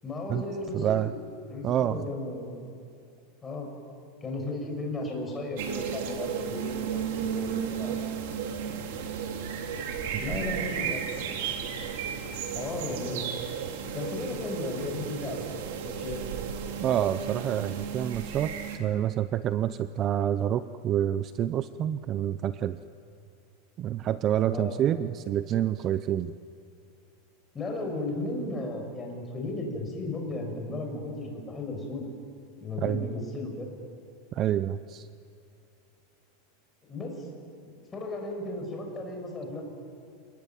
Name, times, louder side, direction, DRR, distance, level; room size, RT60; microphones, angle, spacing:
voice 1, 0.0-1.1 1.5-2.7 3.4-3.7 4.2-8.0 10.2-11.1 12.5-13.2 13.9-16.2 17.8-17.9 24.5-24.8 27.5-32.1 32.6-33.8 36.9-37.3 37.9-39.6, left 2 dB, 15° left, 1 dB, 5.9 m, -35 dB
voice 2, 0.7-1.1 1.6-2.1 16.8-18.5 18.8-22.8 23.8-26.3 32.8-33.1 34.3-35.1, right 11 dB, 30° right, 13 dB, 0.6 m, -27 dB
sound 1, 5.6-18.8, right 7 dB, 65° right, 3.5 m, -34 dB
28.5 x 19.5 x 9.2 m, 2.4 s
supercardioid pair, 150°, 0 cm